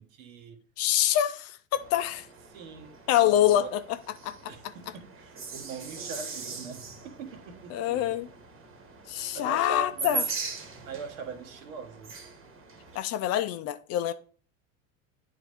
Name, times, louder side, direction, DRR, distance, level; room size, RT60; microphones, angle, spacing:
voice 1, 0.0-0.6 2.5-3.8 4.5-6.9 7.2-8.2 9.3-10.3 10.8-12.2, right 5 dB, 75° right, 1.4 m, -42 dB
voice 2, 0.8-2.3 3.1-3.8 4.2-4.3 7.7-8.3 9.1-10.2 12.9-14.1, left 12 dB, 40° left, 0.5 m, -25 dB
sound 1, 1.7-13.0, right 3 dB, 30° right, 1.4 m, -40 dB
9.1 x 3.6 x 3.4 m
hypercardioid pair, 105°, 41 cm